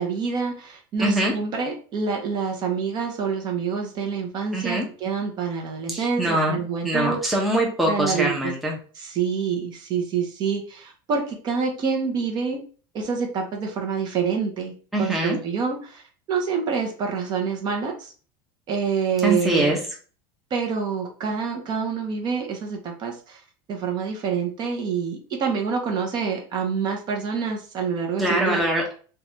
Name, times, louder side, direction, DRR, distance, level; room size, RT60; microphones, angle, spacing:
voice 1, 0.0-7.2 7.8-8.5 9.0-12.6 12.9-16.0 16.3-18.1 18.7-19.7 20.5-23.4 23.7-28.7, right 6 dB, 35° right, 2 dB, 0.7 m, -27 dB
voice 2, 1.0-1.3 4.5-4.9 5.9-6.6 6.8-8.8 14.9-15.4 19.2-19.8 28.2-28.9, right 1 dB, ahead, -2 dB, 0.6 m, -23 dB
3.1 x 2.3 x 2.6 m, 0.40 s
cardioid pair, 150°, 12 cm